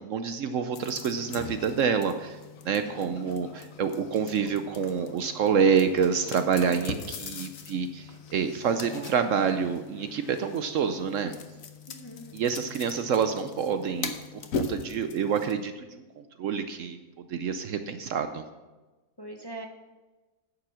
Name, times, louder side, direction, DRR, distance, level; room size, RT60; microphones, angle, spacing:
voice 1, 0.0-2.4 2.6-11.3 12.3-14.1 14.5-16.0 16.4-17.0 17.3-18.4, right 6 dB, 65° right, 9 dB, 0.9 m, -27 dB
sound 1, 0.7-15.5, left 5 dB, 65° left, 1.2 m, -40 dB
voice 2, 2.7-3.5 6.5-7.3 8.7-9.2 11.9-12.4 12.7-12.8 19.2-19.7, right 1 dB, 20° left, 2 dB, 0.8 m, -45 dB
9.7 x 7.0 x 6.2 m, 1.2 s
omnidirectional pair, 1.6 m